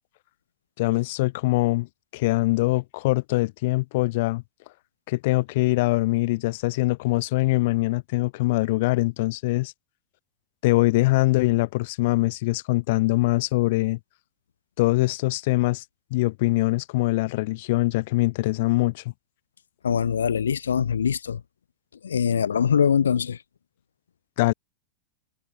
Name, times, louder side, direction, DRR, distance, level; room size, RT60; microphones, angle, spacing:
voice 1, 0.8-4.4 5.1-9.7 10.6-14.0 14.8-15.8 16.1-19.0 24.4-24.5, left 21 dB, 50° left, 1.5 m, -23 dB
voice 2, 19.8-21.4 22.0-23.4, left 7 dB, 70° left, 5.5 m, -23 dB
figure-of-eight pair, 90°, 0 cm